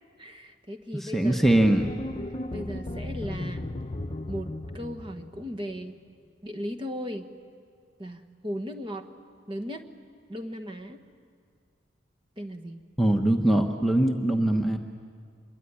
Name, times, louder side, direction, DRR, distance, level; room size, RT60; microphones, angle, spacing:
voice 1, 0.2-1.5 2.5-3.7 4.3-4.5 4.7-5.9 6.4-7.3 8.0-9.1 9.5-9.8 10.3-11.0 12.4-12.8, equal, 25° right, 7 dB, 1.4 m, -36 dB
voice 2, 1.0-1.9 13.0-14.8, right 1 dB, ahead, 2 dB, 1.0 m, -22 dB
sound 1, 1.5-5.7, left 1 dB, 30° left, 0.9 m, -36 dB
25.5 x 22.5 x 10.0 m, 2.2 s
head